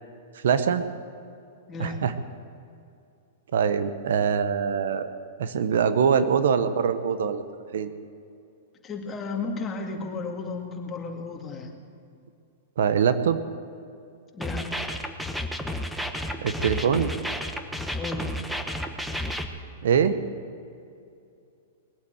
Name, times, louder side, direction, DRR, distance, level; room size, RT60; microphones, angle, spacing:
voice 1, 0.3-0.8 1.8-2.1 3.5-5.1 5.4-7.4 7.7-8.0 12.8-13.4 16.4-17.1 19.8-20.2, right 7 dB, 75° right, 11 dB, 0.9 m, -23 dB
voice 2, 1.7-2.0 8.8-11.7 14.3-14.7 17.9-18.3, left 3 dB, 20° left, 2 dB, 2.1 m, -33 dB
sound 1, 14.4-19.5, equal, ahead, 1.0 m, -31 dB
20.5 x 8.6 x 7.9 m, 2.5 s
hypercardioid pair, 135°, 0 cm